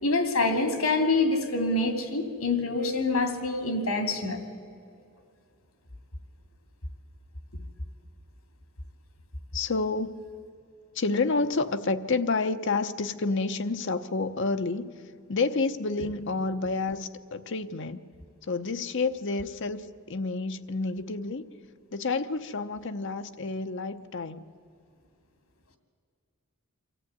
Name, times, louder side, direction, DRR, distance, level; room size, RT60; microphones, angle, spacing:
voice 1, 0.0-4.4, left 2 dB, 85° left, 7 dB, 2.6 m, -26 dB
voice 2, 9.5-10.2 10.9-14.9 15.3-18.0 18.5-21.5 21.9-24.5, left 3 dB, 55° left, 9 dB, 0.8 m, -29 dB
24.0 x 14.5 x 9.5 m, 2.4 s
head